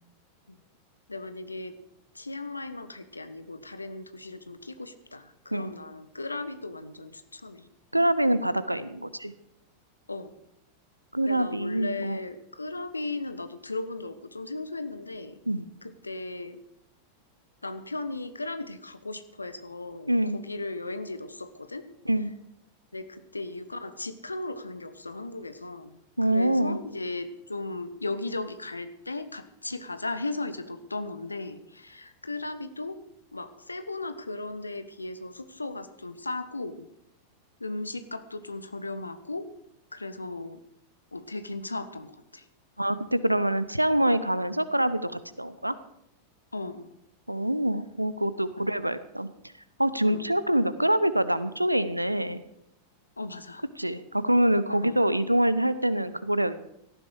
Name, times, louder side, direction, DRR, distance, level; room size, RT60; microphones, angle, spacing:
voice 1, 1.1-1.7 2.1-7.7 10.1-10.4 11.2-15.4 15.8-16.6 17.6-21.8 22.9-26.0 26.3-33.0 33.3-36.9 37.6-39.5 39.9-40.6 41.1-42.5 46.5-46.9 48.6-48.7 50.0-50.3 53.2-53.6 54.7-55.0, left 2 dB, 80° left, 11 dB, 1.3 m, -36 dB
voice 2, 7.9-9.3 11.1-12.2 15.5-15.6 20.1-20.4 22.0-22.3 26.2-26.8 42.8-45.7 47.3-49.3 49.8-52.4 53.8-56.5, right 1 dB, 85° right, 15 dB, 0.9 m, -25 dB
18.0 x 14.0 x 4.9 m, 0.80 s
figure-of-eight pair, 90°, 0 cm